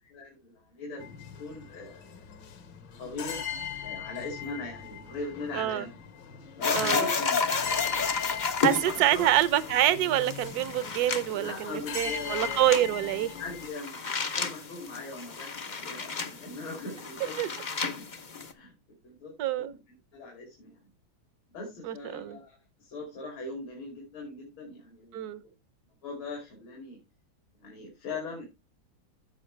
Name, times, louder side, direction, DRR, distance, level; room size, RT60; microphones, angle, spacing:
voice 1, 0.0-2.2 3.0-3.4 3.8-6.0 6.6-9.3 11.3-12.8 13.4-17.3 17.9-18.1 18.5-18.7 19.0-20.8 21.5-25.5 26.0-27.0 27.6-28.5, left 3 dB, 85° left, 3.6 m, -41 dB
sound 1, 1.0-13.7, left 8 dB, 65° left, 1.8 m, -40 dB
voice 2, 5.5-5.8 6.7-7.1 8.6-13.3 17.4-17.5 19.4-19.7 21.8-22.4 25.1-25.4, right 13 dB, 60° right, 1.1 m, -26 dB
sound 2, 6.6-18.5, left 5 dB, 45° left, 0.5 m, -32 dB
15.5 x 5.3 x 3.2 m
omnidirectional pair, 2.2 m